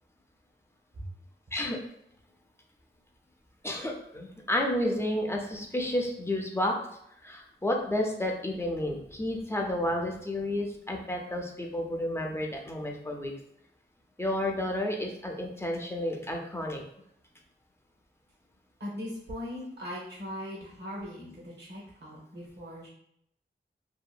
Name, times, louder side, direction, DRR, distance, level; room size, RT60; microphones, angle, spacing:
voice 1, 3.6-6.7 7.2-13.3 14.2-16.8, left 1 dB, 15° left, 1 dB, 0.6 m, -31 dB
voice 2, 18.8-22.9, left 1 dB, 60° right, -5 dB, 1.0 m, -39 dB
2.8 x 2.5 x 2.3 m, 0.74 s
wide cardioid pair, 55°, 20 cm